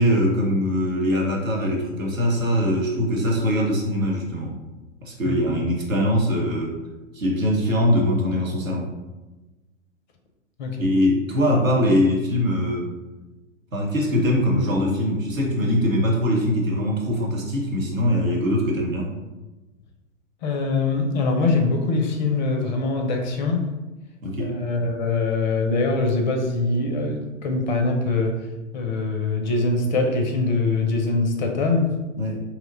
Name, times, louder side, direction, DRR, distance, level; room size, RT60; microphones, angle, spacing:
voice 1, 0.0-4.5 5.0-6.7 7.1-8.9 10.8-12.9 13.7-19.1 24.2-24.5 32.2-32.4, equal, 85° right, -2 dB, 0.9 m, -22 dB
voice 2, 20.4-23.7 24.4-28.4 28.7-31.9, left 3 dB, 35° left, 3 dB, 0.5 m, -23 dB
2.8 x 2.1 x 3.8 m, 1.1 s
figure-of-eight pair, 100°, 39 cm